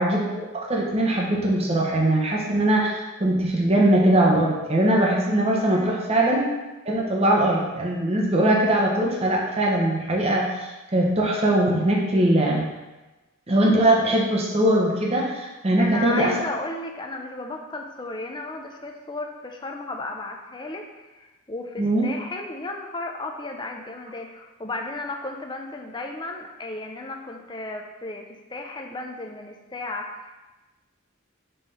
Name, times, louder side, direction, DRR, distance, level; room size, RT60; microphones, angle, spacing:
voice 1, 0.0-6.4 6.9-12.7 13.5-16.3 21.8-22.1, right 1 dB, 30° right, -2 dB, 0.8 m, -21 dB
voice 2, 5.6-6.0 15.7-30.3, left 2 dB, 20° left, 2 dB, 0.5 m, -34 dB
5.4 x 3.3 x 5.5 m, 1.1 s
head